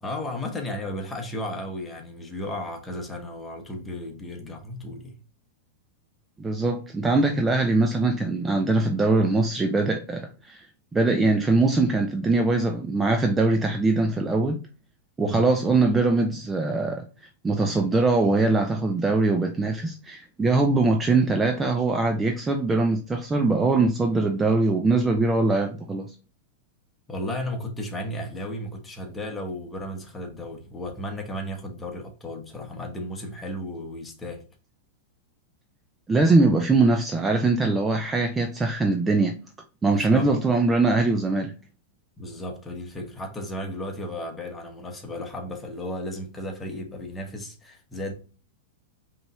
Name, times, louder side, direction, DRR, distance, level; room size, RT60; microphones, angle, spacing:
voice 1, 0.0-5.1 15.2-15.5 27.1-34.4 39.9-40.3 42.2-48.1, left 1 dB, 15° left, 1.1 m, -34 dB
voice 2, 6.4-10.6 10.9-14.6 15.2-17.1 17.4-26.1 36.1-39.4 39.8-41.5, right 3 dB, 15° right, 0.5 m, -22 dB
5.1 x 3.1 x 2.4 m
hypercardioid pair, 100°, 0 cm